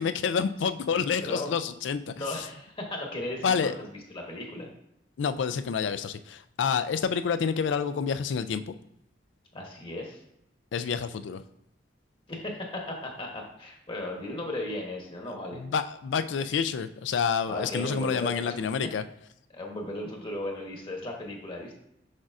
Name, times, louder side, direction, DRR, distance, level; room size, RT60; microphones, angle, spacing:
voice 1, 0.0-2.4 3.4-3.7 5.2-8.7 10.7-11.4 15.5-19.0, left 6 dB, 80° left, 12 dB, 0.4 m, -28 dB
voice 2, 0.9-1.5 2.1-4.7 9.5-10.2 12.3-15.6 17.5-18.6 19.5-21.7, left 1 dB, 30° left, 1 dB, 1.0 m, -36 dB
6.5 x 5.9 x 2.5 m, 0.79 s
head